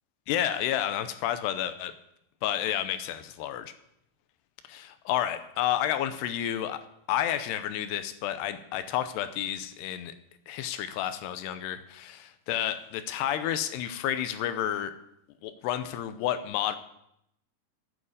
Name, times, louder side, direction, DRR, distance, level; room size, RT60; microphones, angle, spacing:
voice 1, 0.3-2.0 2.4-3.7 4.7-6.8 7.1-10.1 10.5-14.9 15.4-16.8, left 11 dB, 85° left, 10 dB, 2.8 m, -30 dB
9.0 x 8.8 x 8.4 m, 0.77 s
omnidirectional pair, 4.8 m